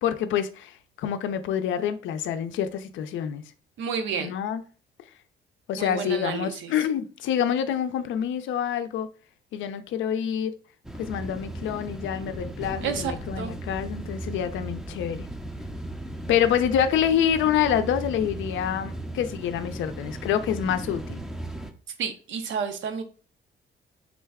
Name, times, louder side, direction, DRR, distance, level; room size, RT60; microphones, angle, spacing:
voice 1, 0.0-3.4 4.2-4.6 5.7-9.1 9.5-10.5 11.0-15.3 16.3-21.2, left 9 dB, 80° left, 0.5 m, -27 dB
voice 2, 3.8-4.3 5.8-6.7 12.8-13.5 22.0-23.0, right 6 dB, 75° right, 0.7 m, -30 dB
sound 1, 10.8-21.7, right 1 dB, ahead, 0.5 m, -37 dB
3.8 x 2.2 x 3.4 m
cardioid pair, 90°, 20 cm